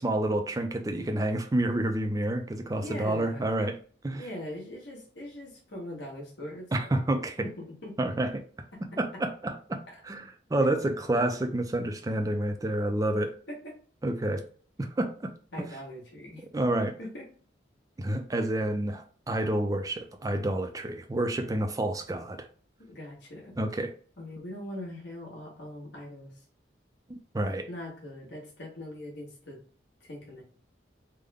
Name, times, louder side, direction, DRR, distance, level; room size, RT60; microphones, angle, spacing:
voice 1, 0.0-3.8 4.0-4.2 6.7-7.5 8.0-8.4 9.0-13.3 14.0-14.4 14.8-15.3 16.5-16.9 18.0-22.5 23.6-23.9 27.1-27.7, right 1 dB, 20° right, 5 dB, 0.4 m, -29 dB
voice 2, 2.8-3.5 4.1-7.0 7.4-7.9 9.9-10.0 13.5-13.7 15.5-16.4 17.0-17.3 22.9-23.5 24.2-26.4 27.7-29.6 30.0-30.4, left 1 dB, 70° left, -2 dB, 1.4 m, -41 dB
3.6 x 2.1 x 3.4 m, 0.43 s
head